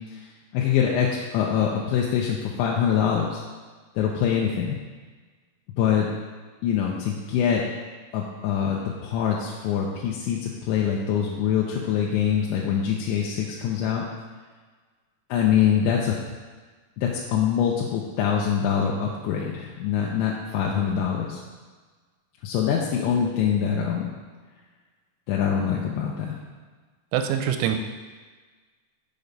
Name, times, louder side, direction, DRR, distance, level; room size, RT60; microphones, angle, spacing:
voice 1, 0.5-3.4 4.0-4.8 5.8-6.1 6.6-7.6 8.1-14.1 15.3-16.2 17.0-21.4 22.4-24.1 25.3-26.4, left 8 dB, 80° left, -3 dB, 2.9 m, -24 dB
voice 2, 27.1-27.8, right 9 dB, 90° right, 6 dB, 3.2 m, -24 dB
7.1 x 6.6 x 5.3 m, 1.4 s
omnidirectional pair, 5.7 m